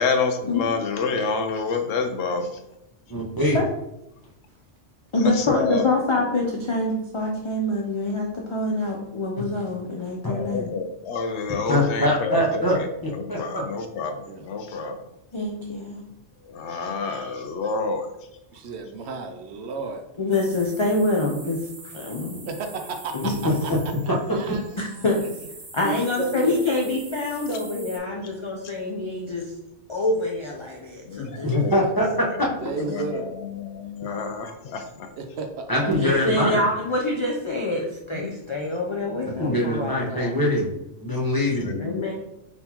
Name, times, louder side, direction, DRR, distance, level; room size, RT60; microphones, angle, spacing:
voice 1, 0.0-2.6 5.2-5.9 10.3-15.0 16.4-18.3 27.5-27.6 28.6-28.7 31.0-32.4 32.7-35.1 38.1-38.4 39.1-39.3 41.6-42.1, left 4 dB, 75° left, 6 dB, 0.9 m, -29 dB
voice 2, 3.1-3.6 9.4-9.5 10.2-10.3 11.7-12.7 13.3-13.6 24.1-24.2 31.4-32.3 35.7-36.6 39.4-40.7 40.9-41.7, left 1 dB, 20° left, -3 dB, 0.9 m, -23 dB
voice 3, 5.1-10.7 15.3-16.0 17.1-17.3 20.2-22.4 23.1-23.5 24.8-25.3 25.7-29.5 29.9-31.5 32.8-32.9 35.8-40.3 41.8-42.1, left 2 dB, 40° left, -1 dB, 0.4 m, -26 dB
voice 4, 18.5-20.0 22.5-23.3 23.6-23.7 24.1-25.3 25.8-26.6 31.9-32.0 32.6-33.3 35.2-36.0 36.4-36.6, right 4 dB, 70° right, 5 dB, 0.8 m, -33 dB
sound 1, 20.3-28.0, right 3 dB, 30° right, 0.8 m, -44 dB
4.1 x 3.8 x 2.9 m, 0.86 s
omnidirectional pair, 1.2 m